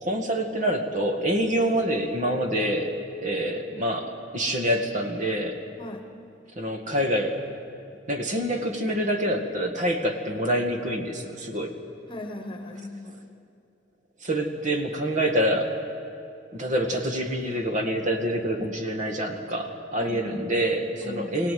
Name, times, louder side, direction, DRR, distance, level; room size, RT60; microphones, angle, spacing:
voice 1, 0.0-5.6 6.6-7.4 8.1-11.7 14.2-15.7 16.5-21.5, equal, 40° right, 4 dB, 1.8 m, -26 dB
voice 2, 12.1-13.2 20.0-20.5 21.0-21.4, left 1 dB, 25° left, 6 dB, 1.6 m, -37 dB
23.5 x 17.0 x 9.4 m, 2.6 s
head